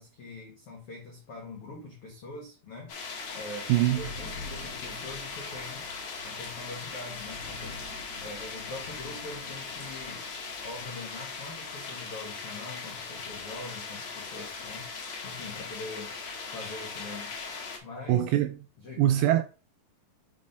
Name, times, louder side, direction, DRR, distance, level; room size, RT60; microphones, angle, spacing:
voice 1, 0.0-2.9 3.3-5.9 6.2-7.9 8.2-10.3 10.6-14.9 15.2-16.1 16.5-17.3 17.8-18.4 18.8-19.1, left 2 dB, 85° left, 1.2 m, -43 dB
sound 1, 2.9-17.8, left 4 dB, 55° left, 1.7 m, -39 dB
voice 2, 3.7-4.0 18.1-18.5 19.0-19.4, right 13 dB, 85° right, 2.2 m, -23 dB
6.4 x 3.9 x 5.3 m
omnidirectional pair, 4.7 m